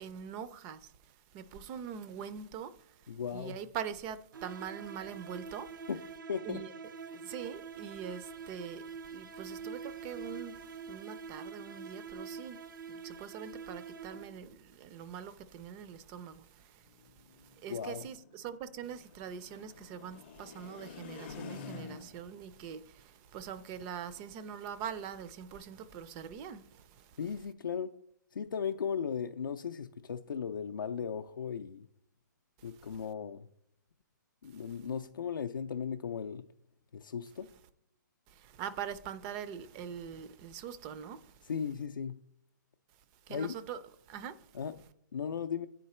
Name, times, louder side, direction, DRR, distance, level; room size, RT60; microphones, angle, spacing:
voice 1, 0.0-5.8 6.4-6.7 7.1-16.9 17.3-27.2 32.8-33.0 38.3-41.4 43.3-43.8 44.1-44.5, right 8 dB, 20° right, 0.3 m, -43 dB
voice 2, 3.1-3.6 5.9-6.0 6.3-6.6 17.7-18.0 27.2-27.9 28.3-31.9 32.6-33.5 34.4-36.4 36.9-37.5 41.5-42.2 43.3-43.5 44.5-44.7 45.1-45.7, left 7 dB, 90° left, 0.4 m, -36 dB
sound 1, 4.3-14.5, right 5 dB, 80° right, 0.5 m, -45 dB
sound 2, 16.9-22.4, left 5 dB, 35° left, 0.5 m, -49 dB
10.0 x 3.9 x 4.2 m
hypercardioid pair, 150°, 11 cm